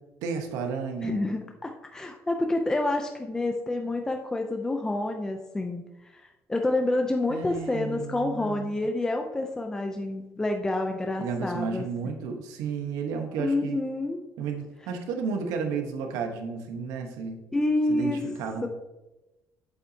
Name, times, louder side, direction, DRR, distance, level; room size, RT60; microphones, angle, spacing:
voice 1, 0.2-1.3 7.3-8.8 11.2-13.8 14.4-17.4 17.9-18.7, right 5 dB, 90° right, 4 dB, 1.1 m, -32 dB
voice 2, 1.0-5.8 6.1-6.2 6.5-11.8 13.4-14.2 17.5-18.2 18.6-18.7, left 2 dB, 10° left, 4 dB, 0.5 m, -28 dB
8.0 x 7.8 x 2.8 m, 1.0 s
cardioid pair, 145°, 6 cm